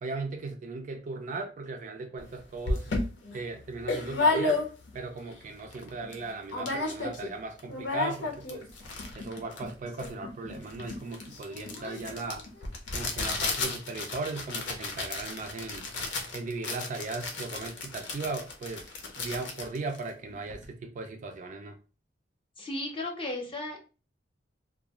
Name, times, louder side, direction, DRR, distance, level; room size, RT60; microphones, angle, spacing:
voice 1, 0.0-2.9 3.3-4.6 4.9-8.7 9.1-12.4 12.9-15.9 16.3-18.9 19.2-21.8, right 3 dB, 45° right, 0.4 m, -37 dB
sound 1, 2.2-2.3 2.7-5.0 5.5-5.6 5.7-6.2 6.5-7.3 7.6-20.7, left 3 dB, 80° left, 0.6 m, -33 dB
voice 2, 22.6-23.8, left 2 dB, 30° left, 0.7 m, -35 dB
2.4 x 2.2 x 2.9 m
head